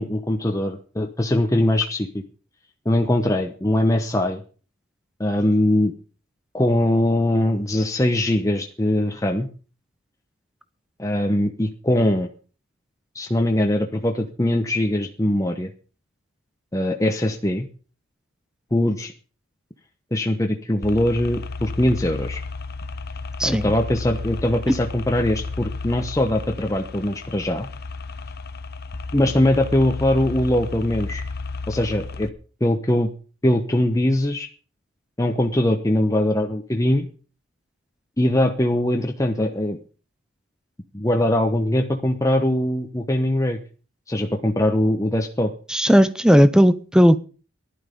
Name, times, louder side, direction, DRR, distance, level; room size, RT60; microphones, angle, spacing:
voice 1, 0.0-2.2 2.8-4.4 5.2-5.9 6.5-9.5 11.0-12.3 13.1-15.7 16.7-17.7 18.7-19.1 20.1-22.4 23.4-27.7 29.1-31.2 31.7-32.3 32.6-33.1 33.4-34.5 35.2-37.1 38.2-39.8 40.9-43.6 44.1-45.5, left 1 dB, 15° left, 1.0 m, -21 dB
sound 1, 20.8-32.3, left 3 dB, 50° left, 0.9 m, -33 dB
voice 2, 23.4-23.7 45.7-47.2, equal, 5° right, 0.6 m, -15 dB
15.0 x 11.5 x 5.2 m
head